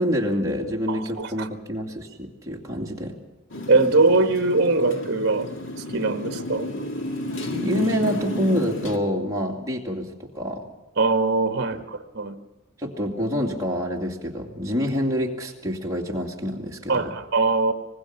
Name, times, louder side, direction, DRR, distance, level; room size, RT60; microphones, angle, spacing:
voice 1, 0.0-3.2 7.5-10.6 11.7-11.8 12.8-17.1, equal, 15° right, -2 dB, 2.5 m, -27 dB
voice 2, 0.9-1.5 3.7-5.5 5.9-6.7 11.0-12.3 16.9-17.7, right 3 dB, 50° right, 8 dB, 1.4 m, -21 dB
Motorcycle, 3.5-9.0, left 1 dB, 60° left, 2.0 m, -32 dB
25.0 x 19.5 x 5.9 m, 1.1 s
head